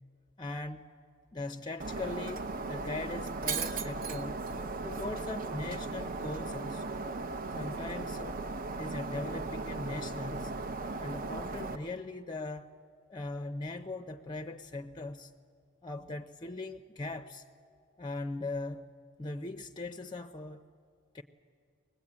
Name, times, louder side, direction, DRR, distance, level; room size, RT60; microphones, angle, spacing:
voice 1, 0.4-0.9 1.3-4.4 4.8-7.0 7.5-8.4 8.7-10.5 11.0-12.7 13.1-15.3 15.8-17.4 18.0-18.9 19.2-20.6 21.1-21.2, left 2 dB, 20° left, 0.6 m, -40 dB
Shatter, 1.8-11.8, right 3 dB, 45° right, 0.8 m, -37 dB
23.5 x 20.0 x 8.6 m
head